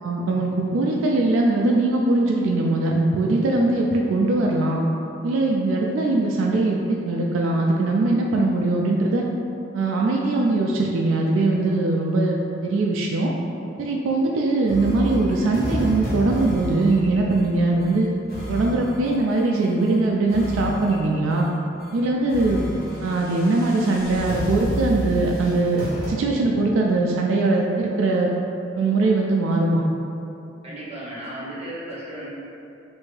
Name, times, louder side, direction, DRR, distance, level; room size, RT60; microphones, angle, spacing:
voice 1, 0.0-4.8 5.2-9.2 9.7-12.4 12.6-13.3 13.8-18.1 18.5-21.5 21.9-22.6 23.0-25.8 26.1-28.3 28.8-29.8, right 2 dB, 90° right, -1 dB, 0.3 m, -21 dB
sound 1, 14.7-19.9 20.3-21.5 21.8-22.0 22.3-26.1, equal, 50° left, 0.9 m, -31 dB
voice 2, 30.6-32.3, right 1 dB, 30° right, -7 dB, 0.9 m, -35 dB
3.3 x 2.6 x 3.2 m, 2.7 s
head